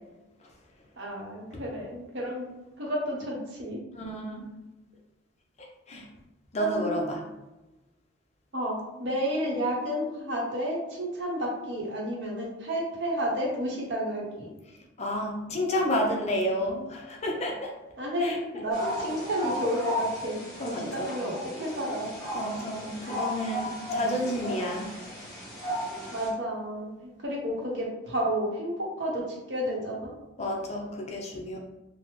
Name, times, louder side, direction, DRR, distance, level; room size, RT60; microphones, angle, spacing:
voice 1, 1.0-2.4 2.8-3.8 6.6-7.1 8.5-14.5 18.0-22.1 26.1-30.1, equal, 65° right, -2 dB, 0.8 m, -31 dB
voice 2, 4.0-4.5 5.9-6.1 6.5-7.2 15.0-17.7 18.2-18.4 20.6-21.1 22.3-24.9 30.4-31.6, equal, 35° left, 0 dB, 0.4 m, -30 dB
sound 1, 18.7-26.3, equal, 20° left, 0.9 m, -35 dB
3.3 x 2.0 x 3.0 m, 1.0 s
head